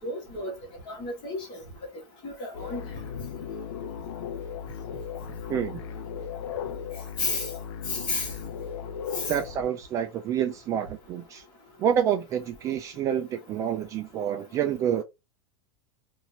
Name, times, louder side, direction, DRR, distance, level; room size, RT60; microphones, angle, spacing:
voice 1, 0.0-0.5 0.9-1.6 2.2-2.9 7.2-7.5 7.9-8.3 9.2-9.3, left 3 dB, 30° left, 1.7 m, -31 dB
sound 1, 2.5-9.6, left 7 dB, 75° left, 0.6 m, -36 dB
voice 2, 5.5-5.8 9.3-11.4 11.8-15.0, right 9 dB, 20° right, 0.3 m, -28 dB
4.1 x 2.6 x 2.9 m
supercardioid pair, 165°, 15 cm